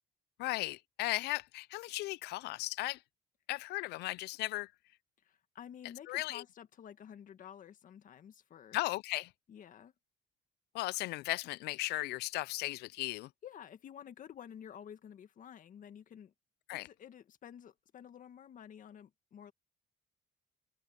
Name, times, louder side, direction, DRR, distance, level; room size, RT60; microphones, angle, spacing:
voice 1, 0.4-3.0 3.5-4.7 6.1-6.4 8.7-9.3 10.7-13.3 16.7-16.9, left 19 dB, 75° left, 0.4 m, -36 dB
voice 2, 5.2-8.8 9.5-9.9 13.4-16.3 16.7-19.5, left 9 dB, 50° left, 1.9 m, -51 dB
open air
cardioid pair, 110°, 17 cm